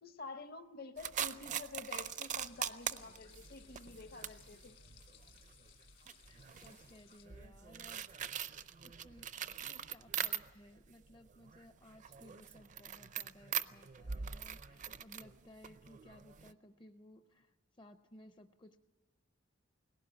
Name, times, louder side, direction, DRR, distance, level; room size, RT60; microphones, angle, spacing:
voice 1, 0.0-4.8, left 3 dB, 50° left, 0.8 m, -49 dB
sound 1, 1.0-10.8 11.1-16.5, right 8 dB, 40° right, 0.5 m, -42 dB
sound 2, 1.8-7.3, left 10 dB, 70° left, 1.8 m, -63 dB
voice 2, 6.0-8.3 8.8-9.3 9.6-18.8, left 1 dB, 25° left, 0.5 m, -59 dB
19.5 x 17.0 x 8.2 m
head